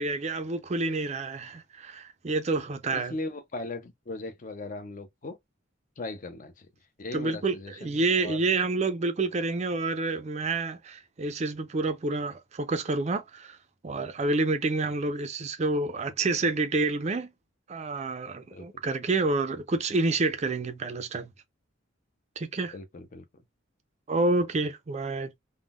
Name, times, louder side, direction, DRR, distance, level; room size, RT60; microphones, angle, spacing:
voice 1, 0.0-3.1 7.1-13.6 13.8-17.3 17.7-21.3 22.4-22.7 24.1-25.3, right 3 dB, 35° right, 0.4 m, -28 dB
voice 2, 2.9-5.4 6.0-6.7 7.0-8.4 18.5-18.7 22.7-23.2, left 2 dB, 40° left, 0.5 m, -38 dB
3.6 x 2.1 x 2.3 m
head